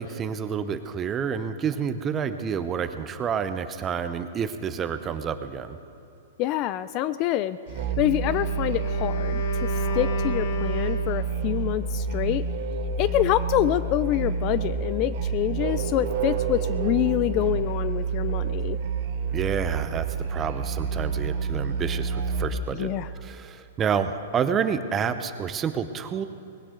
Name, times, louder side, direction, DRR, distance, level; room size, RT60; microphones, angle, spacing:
voice 1, 0.0-5.8 19.3-22.9 23.1-26.3, right 7 dB, 20° right, 10 dB, 0.7 m, -29 dB
voice 2, 6.4-12.4 13.0-18.8 22.7-23.1, left 13 dB, 35° left, 15 dB, 0.3 m, -26 dB
Musical instrument, 7.7-22.7, right 5 dB, 60° right, 1.9 m, -28 dB
Wind instrument woodwind instrument, 8.1-11.6, left 8 dB, 55° left, 1.1 m, -33 dB
19.5 x 17.0 x 3.9 m, 2.8 s
hypercardioid pair, 150°, 0 cm